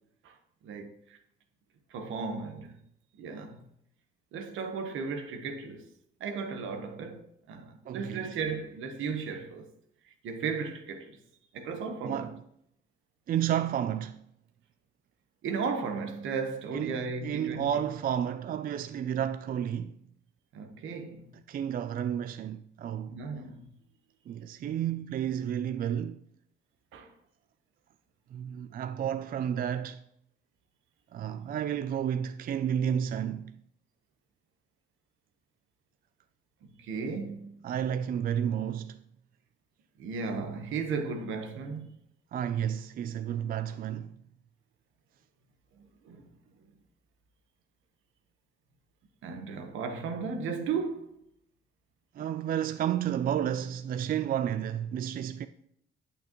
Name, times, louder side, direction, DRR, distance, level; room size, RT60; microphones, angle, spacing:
voice 1, 0.6-1.2 1.9-2.7 3.2-3.6 4.3-5.9 6.2-9.7 10.2-11.2 11.5-12.3 15.4-17.7 20.5-21.3 23.1-23.7 26.9-27.1 36.8-37.6 40.0-41.9 46.0-46.3 49.2-51.1, right 5 dB, 80° right, 1.1 m, -35 dB
voice 2, 7.9-8.3 12.0-12.4 13.3-14.2 16.7-20.0 21.5-23.2 24.3-26.2 28.3-30.0 31.1-33.6 37.6-39.0 42.3-44.1 52.1-55.5, right 9 dB, 45° right, 0.4 m, -31 dB
8.4 x 8.2 x 3.0 m
cardioid pair, 90°, 20 cm